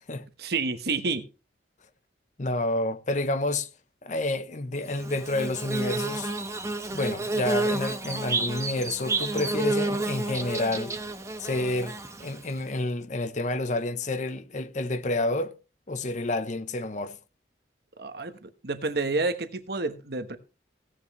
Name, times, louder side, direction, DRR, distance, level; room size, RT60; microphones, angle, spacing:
voice 1, 0.4-1.2 18.0-20.4, right 3 dB, 60° right, 1.2 m, -29 dB
voice 2, 2.4-3.7 4.0-6.3 6.9-11.0 11.4-15.5 15.9-17.2, left 2 dB, 45° left, 0.9 m, -29 dB
Bird / Buzz, 4.9-12.6, right 2 dB, 15° right, 1.0 m, -30 dB
17.0 x 10.0 x 3.2 m
head